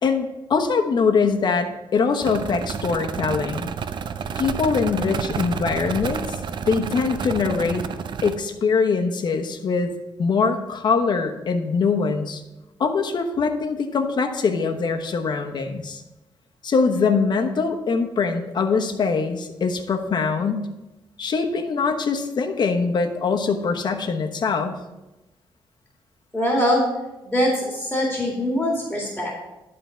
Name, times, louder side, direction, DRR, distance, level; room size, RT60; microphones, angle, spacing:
voice 1, 0.0-3.7 4.3-6.4 6.7-7.8 8.2-9.9 10.2-12.4 12.8-16.0 16.6-20.7 21.2-24.7, left 5 dB, 55° left, 5 dB, 1.0 m, -23 dB
sound 1, 2.2-8.3, right 6 dB, 60° right, 0.5 m, -30 dB
voice 2, 26.3-26.8 27.2-29.5, equal, 5° left, -2 dB, 2.2 m, -23 dB
11.5 x 3.9 x 5.7 m, 1.0 s
cardioid pair, 105°, 9 cm